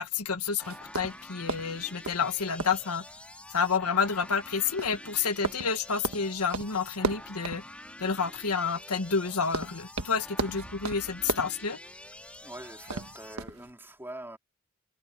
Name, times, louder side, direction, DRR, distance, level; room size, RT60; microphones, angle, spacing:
voice 1, 0.0-3.0 3.5-7.6 8.0-11.8, left 5 dB, 90° left, 1.6 m, -29 dB
sound 1, 0.6-13.4, left 1 dB, 5° left, 2.9 m, -47 dB
sound 2, 0.6-13.7, right 3 dB, 70° right, 1.4 m, -38 dB
voice 2, 12.4-14.4, right 1 dB, 10° right, 3.3 m, -44 dB
head